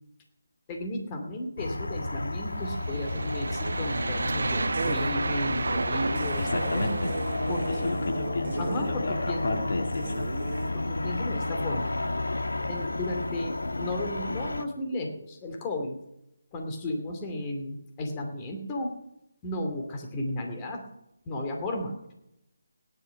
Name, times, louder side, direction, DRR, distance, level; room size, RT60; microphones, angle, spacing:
voice 1, 0.7-6.9 7.5-8.0 8.6-9.7 10.7-11.9 12.7-16.0 16.5-18.9 19.4-20.8 21.2-22.0, left 1 dB, 20° left, 3 dB, 2.6 m, -34 dB
sound 1, 1.6-14.6, left 2 dB, 85° left, 1.4 m, -32 dB
sound 2, 2.6-8.0, right 3 dB, 70° right, 0.5 m, -32 dB
sound 3, 3.7-4.0 4.3-4.4 4.7-5.1 5.6-5.7 6.1-8.9 9.5-9.6 9.9-10.7, right 3 dB, 45° right, 2.1 m, -36 dB
voice 2, 6.4-7.1 7.7-10.3, left 2 dB, 60° left, 4 dB, 2.1 m, -31 dB
17.0 x 11.0 x 6.0 m, 0.85 s
figure-of-eight pair, 155°, 0 cm